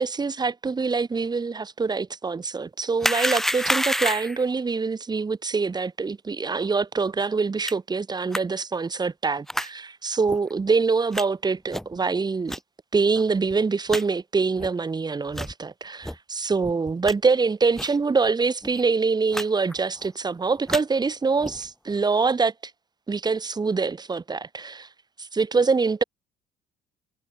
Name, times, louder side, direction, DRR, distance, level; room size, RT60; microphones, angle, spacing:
voice 1, 0.0-12.6 12.9-22.5 23.1-24.9 25.2-26.0, right 4 dB, 25° right, 3.9 m, -25 dB
sound 1, 3.0-4.4 7.7-7.8 8.3-8.4 9.5-9.7 10.3-10.4 11.1-11.2 11.7-12.0 12.5-12.6 13.2-13.3 13.5-13.6 13.9-14.0 14.6-14.7 15.3-15.5 16.0-16.2 16.6-17.1 17.8-18.0 18.2-18.3 18.6-18.8 19.3-19.4 19.7-20.1 20.5-20.8 21.4-21.7, equal, ahead, 3.8 m, -28 dB
cardioid pair, 110°, 17 cm